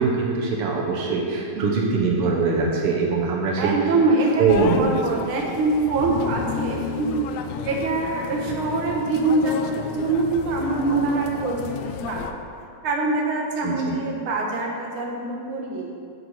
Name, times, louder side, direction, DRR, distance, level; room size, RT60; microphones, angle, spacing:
voice 1, 0.0-3.9 4.4-4.9 13.6-13.8, right 4 dB, 90° right, -2 dB, 1.2 m, -22 dB
voice 2, 3.6-7.2 7.6-12.4 12.8-15.9, right 3 dB, 60° right, -2 dB, 1.4 m, -24 dB
sound 1, 4.5-12.3, left 8 dB, 80° left, 1.9 m, -32 dB
8.0 x 7.8 x 6.5 m, 2.5 s
omnidirectional pair, 4.2 m